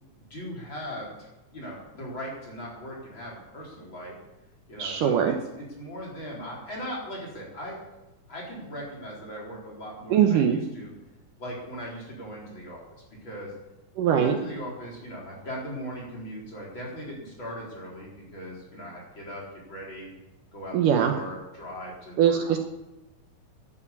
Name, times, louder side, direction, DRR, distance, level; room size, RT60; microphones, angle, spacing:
voice 1, 0.3-4.1 4.7-7.8 8.3-10.9 11.4-12.8 13.2-13.5 14.0-19.4 19.7-20.1 20.5-22.5, equal, 30° left, -3 dB, 4.6 m, -39 dB
voice 2, 4.8-5.3 10.1-10.6 14.0-14.4 20.7-21.1 22.2-22.6, right 9 dB, 70° right, 4 dB, 2.4 m, -21 dB
12.0 x 11.5 x 8.5 m, 1.0 s
omnidirectional pair, 4.3 m